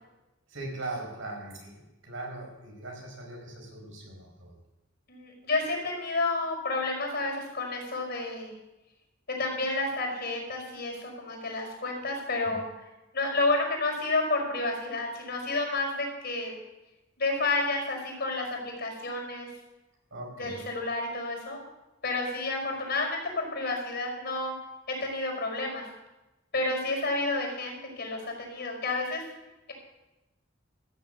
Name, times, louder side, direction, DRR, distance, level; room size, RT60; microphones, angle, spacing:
voice 1, 0.5-4.6 12.4-12.5 20.1-20.7, right 2 dB, 85° right, 0 dB, 5.0 m, -40 dB
voice 2, 5.1-8.5 9.3-12.6 13.1-16.5 17.2-19.5 20.4-21.6 22.0-24.6 24.9-25.9 26.5-29.2, left 2 dB, 55° left, 1 dB, 5.4 m, -30 dB
14.5 x 7.6 x 8.3 m, 1.0 s
head